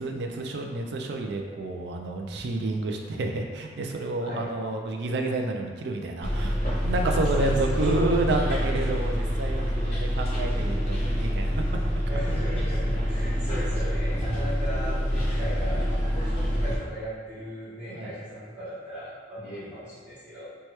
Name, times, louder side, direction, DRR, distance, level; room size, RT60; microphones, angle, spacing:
voice 1, 0.0-11.5 17.9-18.1 19.5-19.6, right 2 dB, 65° right, 2 dB, 0.3 m, -29 dB
voice 2, 4.2-4.5 7.3-7.8 12.1-20.6, equal, 5° right, -16 dB, 1.1 m, -37 dB
Bus, 6.2-16.8, equal, 35° left, 0.9 m, -26 dB
3.1 x 2.2 x 2.9 m, 1.5 s
head